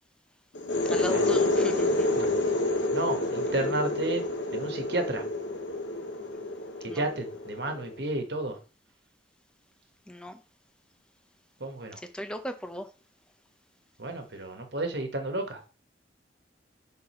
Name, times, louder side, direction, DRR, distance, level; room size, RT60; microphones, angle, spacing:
sound 1, 0.5-8.1, left 2 dB, 90° left, 1.1 m, -28 dB
voice 1, 0.8-2.2 6.9-7.1 10.1-10.4 12.1-12.9, left 1 dB, 5° left, 0.6 m, -37 dB
voice 2, 2.9-4.2 4.5-5.2 6.8-8.6 11.6-12.0 14.0-15.7, right 2 dB, 65° right, 1.4 m, -32 dB
6.1 x 3.9 x 4.3 m
head